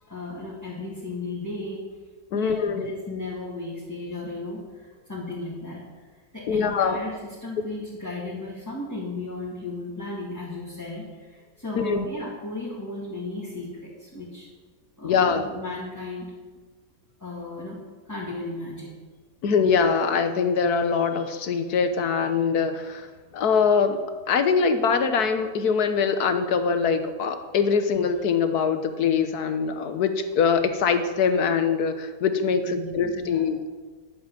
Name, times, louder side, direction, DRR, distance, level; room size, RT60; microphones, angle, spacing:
voice 1, 0.1-1.8 2.3-5.8 6.3-7.1 7.4-14.5 15.0-16.3 17.2-17.8 18.1-18.9 32.7-33.4, left 2 dB, 10° left, -6 dB, 2.6 m, -35 dB
voice 2, 2.3-2.9 6.5-7.0 11.8-12.0 15.0-15.5 19.4-23.1 23.3-24.0 24.3-33.7, left 6 dB, 70° left, 9 dB, 1.6 m, -23 dB
11.5 x 7.9 x 8.9 m, 1.4 s
omnidirectional pair, 1.8 m